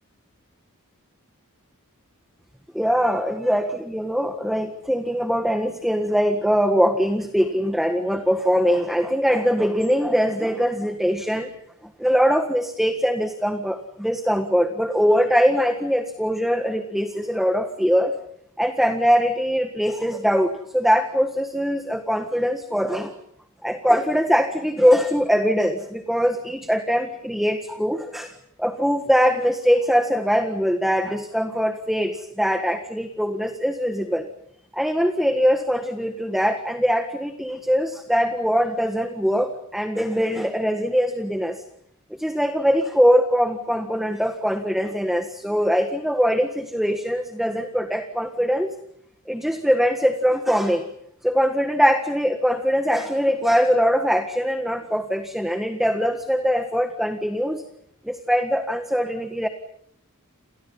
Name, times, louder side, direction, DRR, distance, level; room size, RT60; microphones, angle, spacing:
voice 1, 2.7-11.5 12.0-18.2 18.6-23.1 23.6-28.3 28.6-34.3 34.7-41.6 42.1-48.7 49.3-50.9 51.2-57.6 58.0-59.5, equal, ahead, 6 dB, 1.6 m, -22 dB
30.0 x 28.5 x 5.7 m, 0.70 s
head